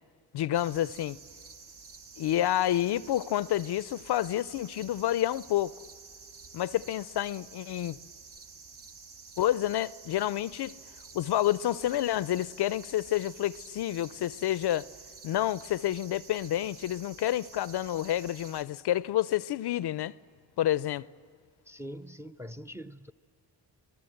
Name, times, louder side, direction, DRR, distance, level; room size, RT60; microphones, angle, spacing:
voice 1, 0.3-1.2 2.2-5.7 6.5-8.0 9.4-10.8 11.1-14.9 15.2-20.1 20.6-21.1, left 13 dB, 60° left, 0.5 m, -29 dB
sound 1, 0.5-18.6, right 5 dB, 60° right, 1.2 m, -50 dB
voice 2, 21.7-23.1, equal, 5° right, 0.6 m, -43 dB
26.0 x 19.0 x 7.9 m
supercardioid pair, 50°, 45 cm